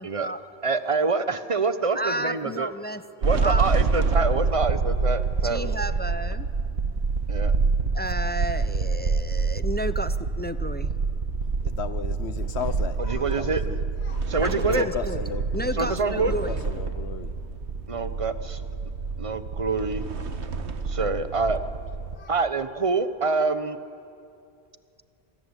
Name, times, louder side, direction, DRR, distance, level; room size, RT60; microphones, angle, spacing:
voice 1, 0.0-0.4 1.9-3.0 3.4-3.7 5.4-6.5 7.9-10.9 14.4-15.2 15.5-16.6, right 1 dB, 15° left, 12 dB, 0.4 m, -32 dB
voice 2, 0.6-2.7 3.2-5.7 7.3-7.5 13.0-13.6 14.3-14.9 15.8-16.3 17.9-18.6 19.2-20.1 20.9-21.6 22.3-23.8, right 4 dB, 30° right, 11 dB, 1.0 m, -26 dB
sound 1, 3.2-22.2, right 4 dB, 80° right, 1.6 m, -27 dB
voice 3, 11.6-13.8 14.0-14.2 14.6-17.3 22.1-22.3, left 6 dB, 70° left, 12 dB, 1.3 m, -35 dB
27.5 x 20.5 x 9.9 m, 2.4 s
omnidirectional pair, 1.1 m